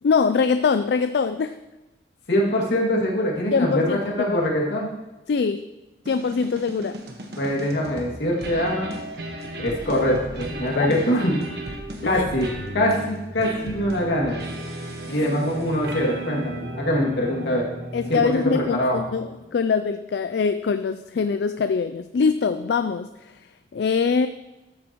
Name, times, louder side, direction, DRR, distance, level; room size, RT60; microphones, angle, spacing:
voice 1, 0.0-1.6 3.5-4.4 5.3-5.7 6.1-7.0 10.8-10.9 12.0-12.2 15.1-15.3 17.9-24.3, left 5 dB, 70° left, 11 dB, 0.3 m, -23 dB
voice 2, 2.3-4.9 7.4-8.9 9.6-11.3 12.0-14.4 15.1-17.7 18.2-18.4 18.8-19.0, equal, 85° left, -3 dB, 2.3 m, -23 dB
sound 1, 6.1-19.5, right 1 dB, 60° right, 1.3 m, -35 dB
13.0 x 8.2 x 3.0 m, 1.1 s
head